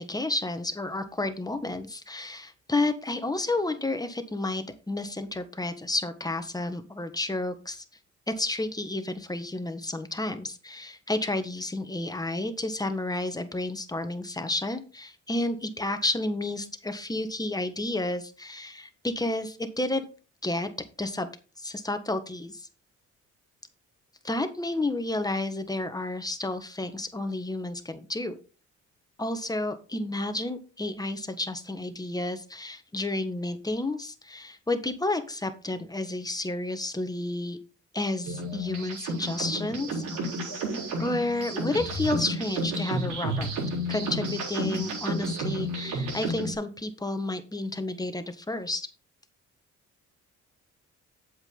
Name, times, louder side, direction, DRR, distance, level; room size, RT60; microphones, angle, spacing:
voice 1, 0.0-7.8 8.3-20.1 20.4-20.7 21.0-21.3 21.6-22.7 24.2-28.3 29.2-37.6 37.9-40.0 41.0-43.5 43.9-48.9, left 2 dB, 10° left, 8 dB, 1.4 m, -31 dB
sound 1, 38.2-46.5, right 1 dB, 85° right, 4.1 m, -31 dB
8.1 x 7.6 x 3.8 m, 0.34 s
cardioid pair, 90°, 30 cm